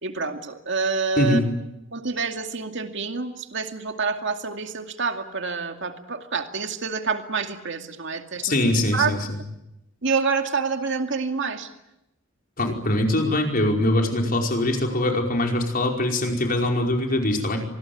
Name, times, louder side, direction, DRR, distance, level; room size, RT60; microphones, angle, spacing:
voice 1, 0.0-1.4 1.9-8.6 8.9-9.1 10.0-11.7, right 5 dB, 65° right, 6 dB, 2.3 m, -27 dB
voice 2, 1.2-1.5 8.4-9.4 12.6-17.6, left 1 dB, 45° left, 2 dB, 5.1 m, -22 dB
26.0 x 21.0 x 9.5 m, 0.90 s
head